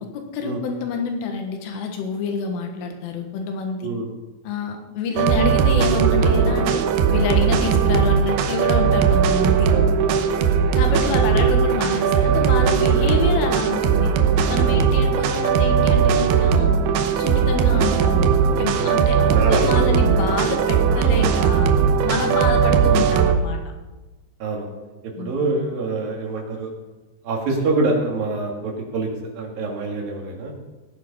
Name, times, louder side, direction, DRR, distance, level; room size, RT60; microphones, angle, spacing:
voice 1, 0.1-3.8 4.4-6.8 7.1-9.7 10.7-14.1 14.5-16.7 17.2-18.3 18.6-21.7 22.0-23.6 25.2-25.4, left 5 dB, 85° left, 4 dB, 4.0 m, -27 dB
sound 1, 5.2-23.4, right 7 dB, 75° right, 2.5 m, -18 dB
voice 2, 9.7-10.2 12.8-12.9 14.6-14.8 18.7-19.8 22.2-22.4 24.4-24.7 25.0-26.7 27.2-30.5, right 3 dB, 55° right, 0 dB, 3.8 m, -26 dB
17.5 x 9.5 x 5.6 m, 1.1 s
omnidirectional pair, 5.6 m